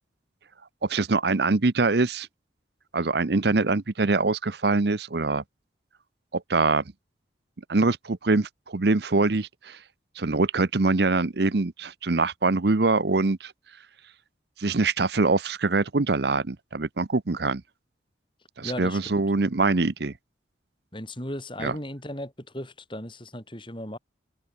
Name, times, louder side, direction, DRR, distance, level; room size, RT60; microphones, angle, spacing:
voice 1, 0.8-2.3 2.9-5.4 6.3-6.8 7.7-9.8 10.2-13.5 14.6-17.6 18.6-20.1 21.6-21.7, right 3 dB, 55° right, 0.8 m, -24 dB
voice 2, 18.6-19.2 20.9-24.0, left 1 dB, 25° left, 6.9 m, -36 dB
head